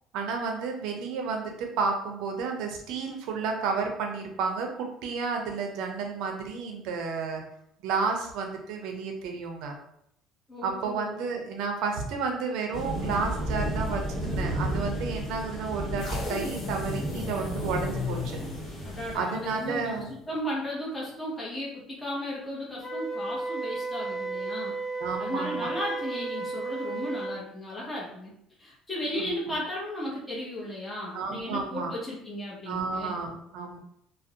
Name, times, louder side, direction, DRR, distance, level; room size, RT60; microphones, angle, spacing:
voice 1, 0.1-7.4 7.8-9.8 10.6-18.4 19.1-20.1 25.0-25.7 29.1-29.6 31.1-31.9 32.7-33.8, right 5 dB, 75° right, 3 dB, 0.5 m, -31 dB
voice 2, 10.5-11.1 18.8-24.8 25.2-28.3 28.6-33.2, left 1 dB, 15° left, -6 dB, 0.8 m, -35 dB
sound 1, 12.7-19.2, right 1 dB, 30° left, 1.4 m, -33 dB
sound 2, 16.0-20.3, left 3 dB, 55° left, 0.6 m, -36 dB
Wind instrument woodwind instrument, 22.8-27.4, right 3 dB, 10° right, 1.2 m, -33 dB
2.5 x 2.0 x 2.7 m, 0.73 s
cardioid pair, 110°, 0 cm